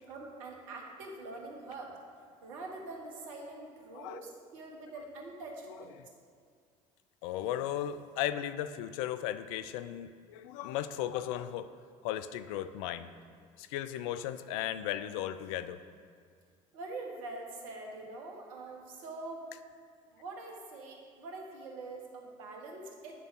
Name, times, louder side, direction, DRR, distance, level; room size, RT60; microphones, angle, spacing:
voice 1, 0.0-1.9 2.4-5.9 16.7-19.4 20.1-23.2, right 2 dB, 75° right, 0 dB, 1.3 m, -44 dB
voice 2, 7.2-11.7 12.0-13.1 13.6-15.8, left 11 dB, 70° left, 12 dB, 0.4 m, -36 dB
8.9 x 3.9 x 6.1 m, 2.1 s
hypercardioid pair, 65°, 18 cm